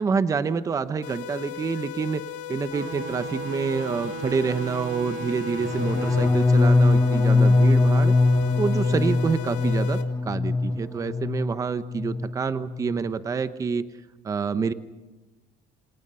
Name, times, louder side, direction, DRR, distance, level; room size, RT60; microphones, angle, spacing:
voice 1, 0.0-2.2 2.5-8.1 8.6-10.0 10.2-13.8 14.2-14.7, right 5 dB, 25° right, 12 dB, 1.0 m, -27 dB
sound 1, 1.0-10.0, left 10 dB, 85° left, 3.3 m, -37 dB
sound 2, 2.7-7.9, right 7 dB, 65° right, 2.9 m, -37 dB
sound 3, 5.6-11.5 11.8-12.3 12.6-13.0, left 3 dB, 15° left, 3.4 m, -21 dB
28.0 x 27.5 x 5.7 m, 1.2 s
cardioid pair, 140°, 14 cm